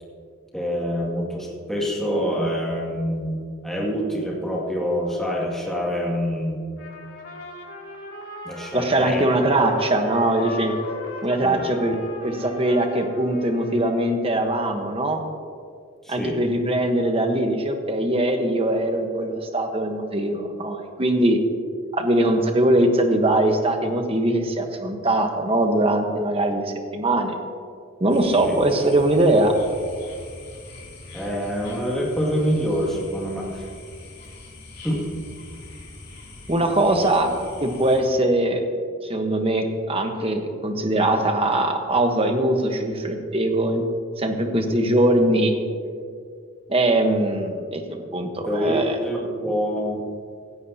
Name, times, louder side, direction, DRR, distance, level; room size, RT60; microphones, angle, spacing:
voice 1, 0.5-6.6 8.4-9.3 11.4-11.6 16.0-16.4 28.4-28.6 31.1-33.7 34.8-35.0 48.4-50.0, equal, ahead, -4 dB, 2.2 m, -26 dB
Trumpet, 6.8-14.1, left 2 dB, 80° left, 2.6 m, -37 dB
voice 2, 8.7-10.7 11.2-15.2 16.1-21.4 21.9-27.3 28.0-29.5 36.5-37.3 37.6-38.6 39.0-43.8 44.2-45.5 46.7-47.8 48.1-49.0, right 1 dB, 30° right, 4 dB, 1.1 m, -21 dB
sound 1, 28.1-38.0, left 2 dB, 50° left, 2.9 m, -42 dB
16.5 x 14.0 x 2.8 m, 2.2 s
head